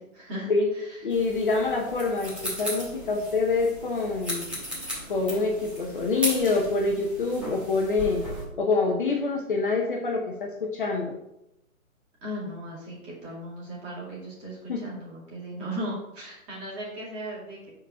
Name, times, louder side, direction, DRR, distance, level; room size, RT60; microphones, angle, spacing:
voice 1, 0.0-1.2 12.2-17.7, equal, 20° right, -6 dB, 2.2 m, -37 dB
voice 2, 1.0-4.6 5.1-8.2 8.6-11.2 14.7-14.8, left 3 dB, 40° left, 0 dB, 0.8 m, -26 dB
sound 1, 1.1-8.4, equal, 5° right, 1.4 m, -36 dB
5.0 x 4.3 x 5.8 m, 0.86 s
hypercardioid pair, 155°, 42 cm